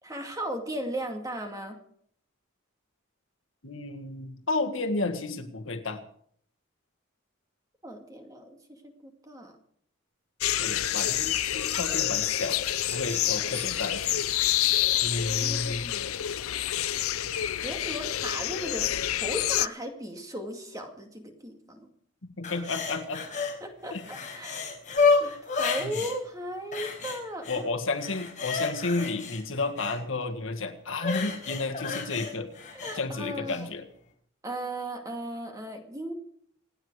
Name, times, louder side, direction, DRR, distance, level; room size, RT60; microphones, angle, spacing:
voice 1, 0.0-1.8 7.8-9.5 15.4-16.2 17.3-21.9 23.6-24.7 25.2-27.6 32.7-33.7 34.4-36.1, right 1 dB, 15° right, 3 dB, 2.3 m, -37 dB
voice 2, 3.6-6.0 10.6-14.2 15.0-15.9 22.2-23.2 23.9-24.0 25.8-26.0 27.5-32.5 32.9-33.8, left 3 dB, 70° left, 6 dB, 1.7 m, -32 dB
sound 1, 10.4-19.7, left 13 dB, 90° left, 0.5 m, -28 dB
sound 2, 10.9-15.1, left 1 dB, 5° left, 3.6 m, -45 dB
sound 3, 22.4-23.5 23.9-26.1 26.7-27.6 27.9-30.0 31.0-33.0 33.5-33.6, left 4 dB, 35° left, 5.1 m, -30 dB
27.0 x 9.6 x 4.9 m, 0.62 s
head